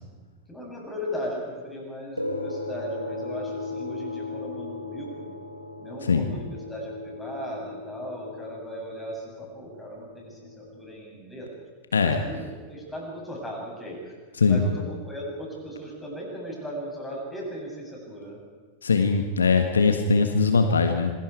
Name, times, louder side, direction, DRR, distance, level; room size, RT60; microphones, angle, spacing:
voice 1, 0.5-5.3 5.8-11.5 11.9-14.1 14.4-18.4 19.6-19.9, equal, 10° left, -2 dB, 7.8 m, -37 dB
sound 1, 2.2-10.9, left 3 dB, 90° left, 1.8 m, -37 dB
voice 2, 18.8-21.1, left 4 dB, 70° left, 7 dB, 1.5 m, -21 dB
27.0 x 21.5 x 4.8 m, 1.5 s
figure-of-eight pair, 90°, 0 cm